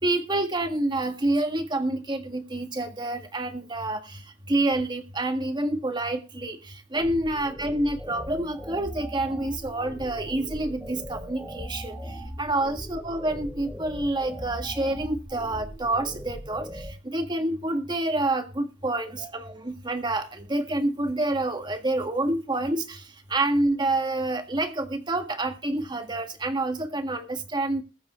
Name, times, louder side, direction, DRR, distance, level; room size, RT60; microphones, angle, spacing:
voice 1, 0.0-4.2 4.5-6.6 6.9-12.0 12.4-23.0 23.3-27.8, right 2 dB, 25° right, 1.8 m, -28 dB
sound 1, 6.9-16.9, equal, 5° right, 2.7 m, -39 dB
21.0 x 7.7 x 3.1 m
head